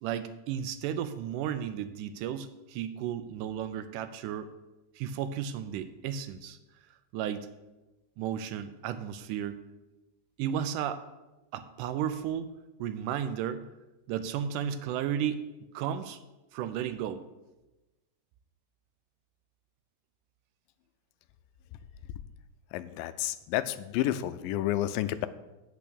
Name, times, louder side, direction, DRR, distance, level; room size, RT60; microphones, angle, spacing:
voice 1, 0.0-4.5 5.0-6.6 7.1-7.5 8.2-9.6 10.4-11.0 11.5-12.5 12.8-13.6 14.1-15.4 15.7-16.2 16.5-17.2, right 9 dB, 80° right, 11 dB, 2.0 m, -33 dB
voice 2, 22.7-25.3, left 13 dB, 90° left, 13 dB, 2.2 m, -30 dB
8.5 x 5.9 x 6.8 m, 1.0 s
omnidirectional pair, 3.9 m